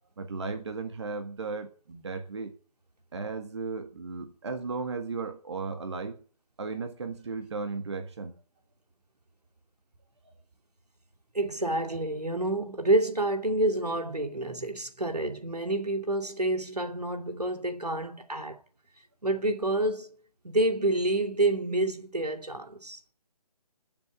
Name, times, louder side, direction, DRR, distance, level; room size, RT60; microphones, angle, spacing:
voice 1, 0.2-2.5 3.1-6.2 6.6-8.4, right 4 dB, 45° right, 1.7 m, -35 dB
voice 2, 11.3-18.6 19.2-20.2 20.4-23.1, right 2 dB, 75° right, 2.5 m, -28 dB
14.0 x 7.3 x 9.1 m
figure-of-eight pair, 150°, 20 cm